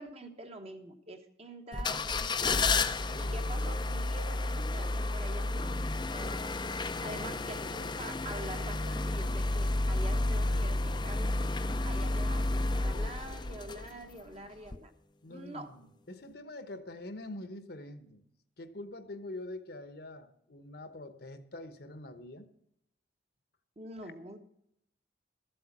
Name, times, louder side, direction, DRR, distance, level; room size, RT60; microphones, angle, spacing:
voice 1, 0.0-2.7 3.1-5.7 6.0-11.4 11.8-14.9 15.3-15.7 23.8-24.4, right 1 dB, 35° right, 6 dB, 1.2 m, -45 dB
sound 1, 1.7-14.2 14.7-14.8, left 2 dB, 25° left, 0.5 m, -31 dB
voice 2, 3.1-3.5 7.1-7.4 15.2-18.2 18.6-22.5 24.0-24.1, left 2 dB, 55° left, 11 dB, 1.0 m, -45 dB
13.5 x 7.9 x 5.9 m, 0.74 s
head